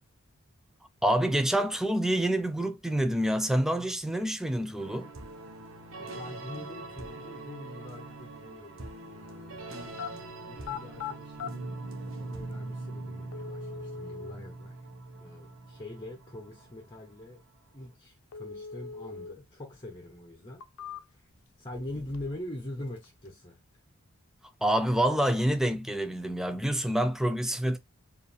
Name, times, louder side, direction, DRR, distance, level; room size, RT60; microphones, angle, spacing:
voice 1, 1.0-5.1 24.6-27.8, right 1 dB, ahead, 0.5 m, -27 dB
sound 1, 4.8-17.4, right 2 dB, 65° right, 1.1 m, -42 dB
voice 2, 5.9-9.9 10.4-11.7 11.9-14.8 15.2-17.4 17.7-20.6 21.1-21.3 21.6-23.6, left 1 dB, 20° left, 1.0 m, -43 dB
sound 2, 9.8-10.1 10.6-11.5 12.5-12.6 13.3-14.3 18.3-19.3 19.7-19.8 20.4-21.3 21.7-22.5 22.7-23.3, left 6 dB, 90° left, 0.6 m, -41 dB
4.8 x 2.7 x 3.3 m
head